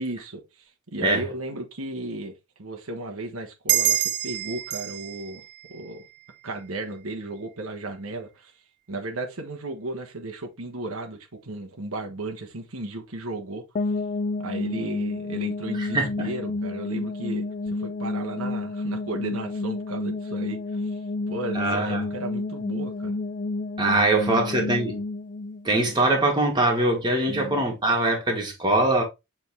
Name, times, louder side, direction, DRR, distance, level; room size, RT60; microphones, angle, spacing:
voice 1, 0.0-2.3 2.6-5.4 5.7-6.0 6.4-8.5 8.9-13.6 14.4-21.0 21.3-23.1 24.1-24.8 27.3-27.6, right 2 dB, 80° right, 1.3 m, -35 dB
sound 1, 3.7-6.8, right 13 dB, 55° right, 0.4 m, -28 dB
sound 2, 13.7-26.6, left 2 dB, 40° left, 0.4 m, -30 dB
voice 2, 15.8-16.3 21.6-22.0 23.8-25.0 25.6-29.0, right 2 dB, 20° right, 1.9 m, -22 dB
7.1 x 3.7 x 3.5 m
head